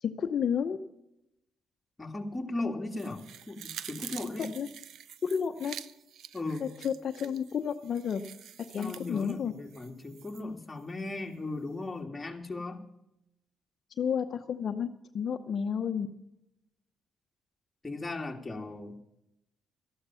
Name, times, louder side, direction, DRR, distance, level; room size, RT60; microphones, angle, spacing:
voice 1, 0.0-0.8 4.5-4.7 5.2-5.7 6.6-8.2 8.7-9.5 14.0-16.1, left 7 dB, 60° left, 7 dB, 0.8 m, -31 dB
voice 2, 2.0-4.5 6.3-6.7 8.8-12.8 17.8-19.0, left 2 dB, 20° left, 2 dB, 2.3 m, -37 dB
sound 1, 3.0-10.4 10.8-10.9, right 9 dB, 75° right, 0.7 m, -47 dB
13.5 x 11.5 x 5.7 m, 0.82 s
cardioid pair, 75°, 0 cm